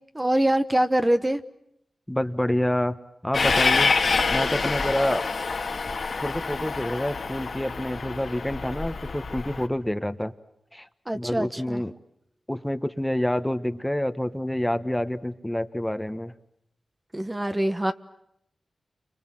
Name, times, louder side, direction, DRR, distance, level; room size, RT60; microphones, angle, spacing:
voice 1, 0.1-1.4 11.1-11.8 17.1-17.9, right 1 dB, 20° right, 8 dB, 1.3 m, -24 dB
voice 2, 2.1-3.0 3.2-3.9 4.3-5.2 6.2-10.3 10.7-10.9 11.1-11.9 12.5-16.3, left 1 dB, 10° left, 11 dB, 1.4 m, -27 dB
Train, 3.3-9.7, left 4 dB, 65° left, 2.1 m, -26 dB
29.5 x 25.0 x 7.7 m, 0.78 s
cardioid pair, 45°, 0 cm